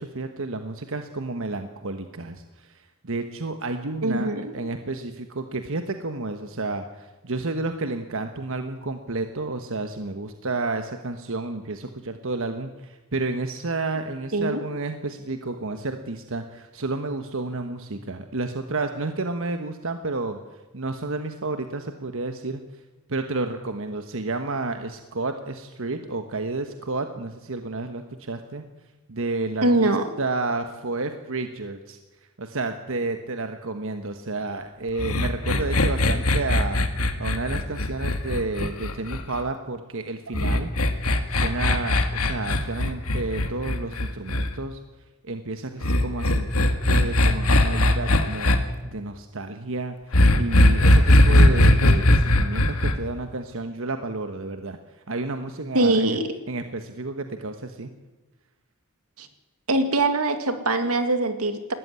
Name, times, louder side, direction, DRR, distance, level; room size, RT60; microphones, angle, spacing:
voice 1, 0.0-4.3 4.5-20.4 20.7-22.6 23.1-28.6 29.1-29.9 30.2-32.0 32.4-36.9 37.2-40.7 41.3-44.8 45.2-48.6 48.9-49.9 50.3-54.8 55.1-56.2 56.5-57.9, right 3 dB, 65° right, 7 dB, 1.2 m, -31 dB
voice 2, 4.0-4.5 14.3-14.6 29.6-30.1 55.7-56.3 59.2-59.3 59.7-61.7, right 2 dB, 90° right, 8 dB, 2.2 m, -22 dB
sound 1, 35.0-39.4 40.3-44.5 45.8-48.6 50.1-52.9, left 1 dB, 80° left, 1.8 m, -19 dB
19.5 x 14.0 x 9.6 m, 1.1 s
head